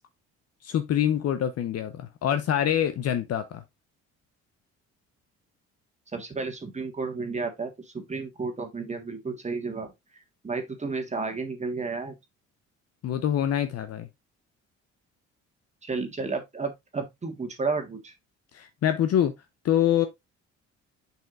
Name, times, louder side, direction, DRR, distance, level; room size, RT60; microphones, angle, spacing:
voice 1, 0.6-3.6 13.0-14.1 18.5-19.3 19.6-20.1, left 10 dB, 55° left, 0.8 m, -25 dB
voice 2, 6.1-9.9 10.4-12.1 15.8-18.1, right 4 dB, 25° right, 1.7 m, -32 dB
7.4 x 5.7 x 2.5 m
cardioid pair, 95°, 30 cm